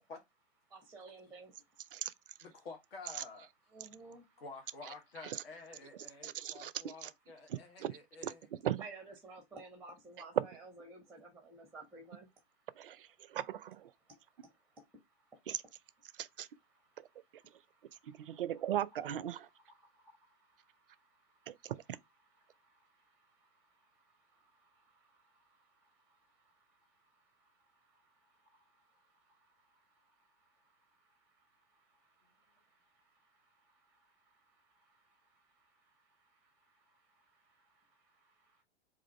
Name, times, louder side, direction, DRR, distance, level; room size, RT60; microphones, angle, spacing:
voice 1, 0.7-2.0 3.7-4.4 8.8-12.7 13.2-13.4 14.0-15.5 16.1-16.2 16.7-18.4 19.4-21.7 22.4-38.6, right 3 dB, 5° right, 0.6 m, -59 dB
voice 2, 2.4-3.5 3.9-4.0 4.4-8.4, left 3 dB, 65° left, 1.0 m, -50 dB
voice 3, 6.2-7.1 7.5-7.9 8.2-8.8 10.4-10.5 12.8-13.9 15.5-15.6 16.2-16.5 17.0-17.1 18.0-19.5 21.5-21.8, right 11 dB, 55° right, 0.4 m, -38 dB
3.6 x 2.5 x 4.1 m
figure-of-eight pair, 110°, 33 cm